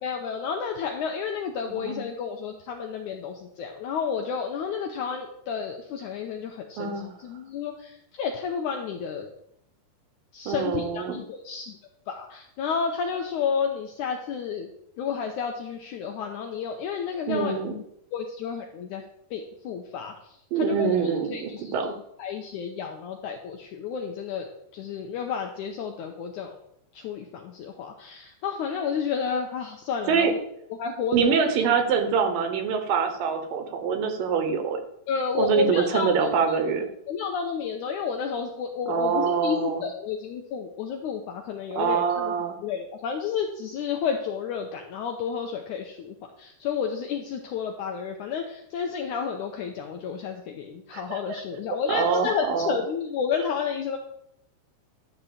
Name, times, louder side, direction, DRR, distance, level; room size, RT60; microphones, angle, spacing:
voice 1, 0.0-9.3 10.3-11.8 12.1-14.7 15.0-17.5 18.1-19.0 19.3-20.1 20.6-20.9 21.3-24.5 24.7-26.6 26.9-30.4 30.8-31.4 35.1-36.1 36.5-36.6 37.1-42.3 42.6-54.0, left 6 dB, 80° left, 3 dB, 1.8 m, -31 dB
voice 2, 1.7-2.0 6.8-7.1 10.5-11.2 17.3-17.8 20.5-21.9 30.1-30.3 31.1-34.8 35.3-36.9 38.9-39.8 41.8-42.6 50.9-51.4 51.9-52.8, right 6 dB, 75° right, 6 dB, 2.6 m, -25 dB
11.5 x 4.2 x 7.2 m, 0.76 s
omnidirectional pair, 4.3 m